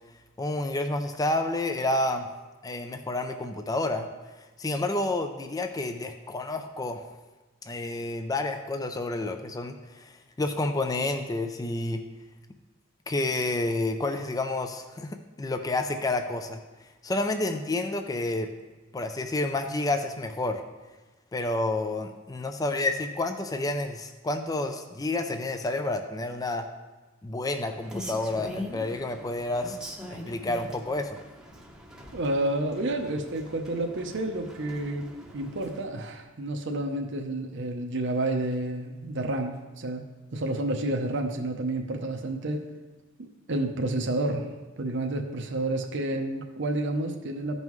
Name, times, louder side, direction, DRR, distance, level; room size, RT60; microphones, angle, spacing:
voice 1, 0.4-2.3 2.6-4.1 4.6-7.0 7.7-12.0 13.1-16.6 17.0-18.5 18.9-20.6 21.3-26.6 27.2-29.8 30.3-31.2, left 2 dB, 15° left, 6 dB, 0.4 m, -29 dB
Rain, 27.7-35.8, left 1 dB, 5° right, 0.8 m, -43 dB
voice 2, 32.1-40.0 40.3-42.6 43.5-44.5 44.8-47.6, right 2 dB, 60° right, 3 dB, 0.7 m, -30 dB
14.0 x 5.4 x 3.1 m, 1.2 s
head